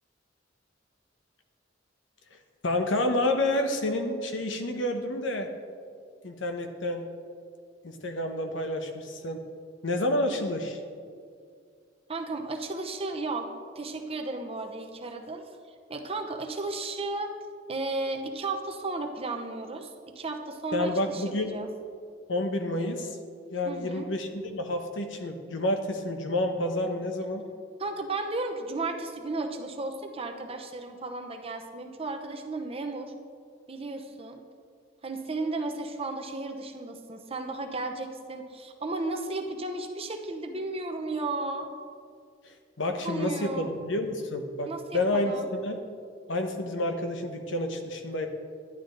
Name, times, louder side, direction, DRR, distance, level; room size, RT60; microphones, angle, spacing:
voice 1, 2.6-5.5 6.2-7.1 7.8-9.4 9.8-10.8 20.7-21.6 22.3-23.2 23.5-27.4 42.4-45.8 46.3-48.3, left 1 dB, 80° left, 5 dB, 1.1 m, -29 dB
voice 2, 12.1-13.5 13.8-15.4 15.9-17.3 17.7-21.2 21.5-21.7 23.6-24.1 27.8-33.1 33.7-34.4 35.0-41.7 43.0-43.7 44.7-45.5, right 2 dB, 30° right, 4 dB, 0.9 m, -34 dB
11.5 x 10.5 x 3.9 m, 2.2 s
head